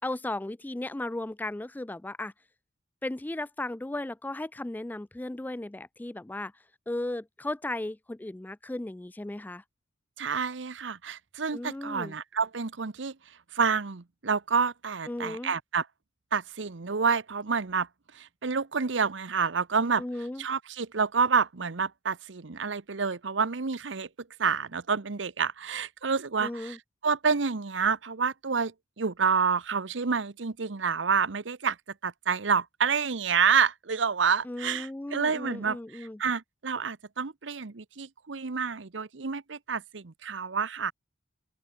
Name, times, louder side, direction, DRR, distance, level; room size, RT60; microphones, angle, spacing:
voice 1, 0.0-2.3 3.0-6.5 6.9-9.6 11.5-12.1 15.1-15.5 20.0-20.4 26.4-26.8 34.4-36.2, left 1 dB, 10° left, 0.3 m, -35 dB
voice 2, 10.2-13.2 13.5-15.9 16.3-17.9 18.1-20.0 20.4-24.1 24.4-26.8 27.0-31.8 32.0-40.9, right 5 dB, 70° right, 0.9 m, -28 dB
open air
head